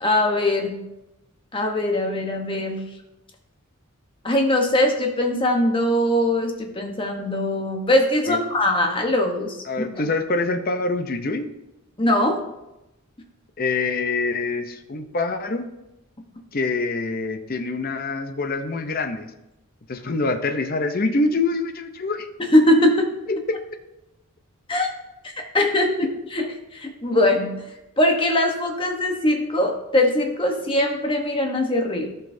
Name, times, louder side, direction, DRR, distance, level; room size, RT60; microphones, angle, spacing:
voice 1, 0.0-0.8 1.5-2.8 4.2-9.9 12.0-12.4 22.4-23.1 24.7-24.9 25.2-26.1 26.3-26.4 26.8-27.5 28.0-32.1, left 1 dB, 20° left, 2 dB, 0.9 m, -21 dB
voice 2, 9.6-11.5 13.6-15.7 16.5-19.3 19.9-22.3 23.3-23.6, left 3 dB, 40° left, 8 dB, 0.6 m, -25 dB
13.5 x 5.6 x 2.7 m, 0.93 s
head